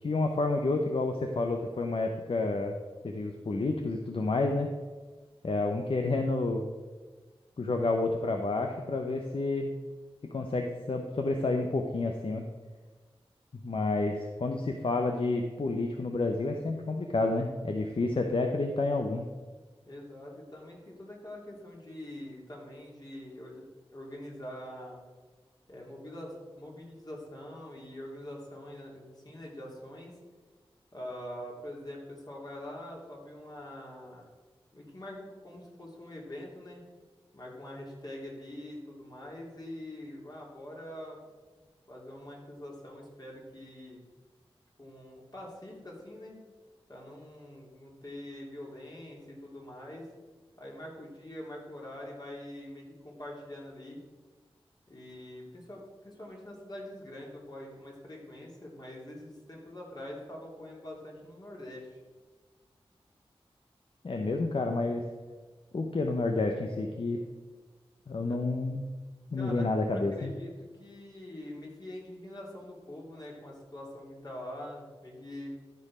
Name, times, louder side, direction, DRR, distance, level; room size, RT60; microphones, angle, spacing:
voice 1, 0.0-2.8 3.0-4.7 5.4-6.6 7.6-9.8 10.3-12.4 13.6-19.3 64.0-65.0 65.7-67.2 68.1-68.8 69.3-70.3, left 3 dB, 60° left, 4 dB, 0.8 m, -29 dB
voice 2, 19.8-23.6 23.9-25.0 25.7-30.2 30.9-34.3 34.7-36.8 37.3-41.2 41.6-44.0 44.8-46.4 46.9-50.1 50.6-54.0 54.9-62.0 69.3-75.5, left 1 dB, 40° left, -3 dB, 3.2 m, -44 dB
13.0 x 4.7 x 4.9 m, 1.3 s
cardioid pair, 40°, 10 cm